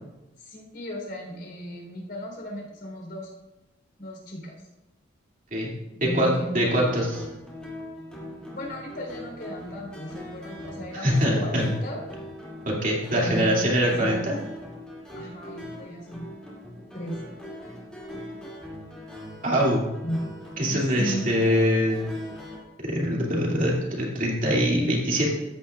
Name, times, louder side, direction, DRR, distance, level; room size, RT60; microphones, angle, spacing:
voice 1, 0.4-3.3 4.0-4.6 5.9-6.7 8.5-12.0 13.1-14.2 15.1-16.3 16.9-17.4 20.0-20.2 20.7-21.3, equal, 55° left, -1 dB, 3.9 m, -35 dB
voice 2, 6.1-7.3 11.0-11.7 12.7-14.4 19.4-19.8 20.6-22.0 22.8-25.3, equal, 40° right, -3 dB, 2.6 m, -23 dB
sound 1, 6.7-22.6, left 1 dB, 5° left, 2.7 m, -41 dB
14.5 x 10.0 x 2.5 m, 0.99 s
head